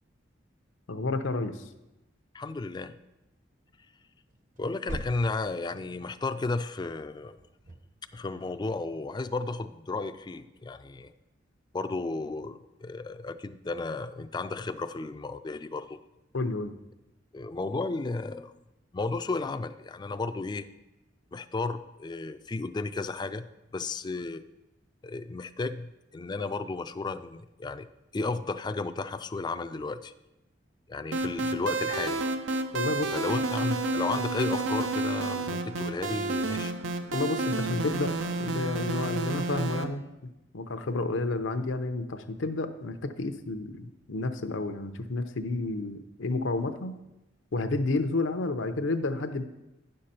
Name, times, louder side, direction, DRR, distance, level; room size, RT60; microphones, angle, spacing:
voice 1, 0.9-1.5 16.3-16.7 32.7-33.1 37.1-38.1 38.4-40.0 40.5-47.0 47.5-49.4, left 2 dB, 85° left, 8 dB, 0.7 m, -30 dB
voice 2, 2.3-2.9 4.6-7.4 8.1-11.1 11.7-16.0 17.3-18.5 18.9-20.7 21.3-23.5 23.7-24.5 25.0-27.9 28.1-30.1 30.9-32.2 33.1-36.7, left 3 dB, 25° left, 10 dB, 0.3 m, -33 dB
sound 1, 4.1-6.3 7.2-8.4, right 1 dB, 45° right, 0.8 m, -43 dB
sound 2, 31.1-39.8, right 2 dB, 90° right, 0.7 m, -30 dB
9.9 x 6.6 x 4.3 m, 0.97 s
head